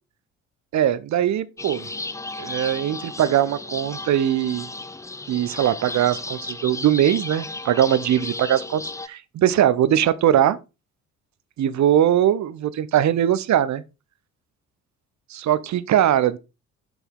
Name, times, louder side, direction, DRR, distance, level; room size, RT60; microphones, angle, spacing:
voice 1, 0.7-1.9 2.4-4.7 5.3-10.6 11.6-13.8 15.3-16.4, right 11 dB, 40° right, 0.8 m, -21 dB
sound 1, 1.6-9.1, left 2 dB, 5° left, 0.6 m, -34 dB
8.1 x 6.2 x 3.6 m
figure-of-eight pair, 50°, 43 cm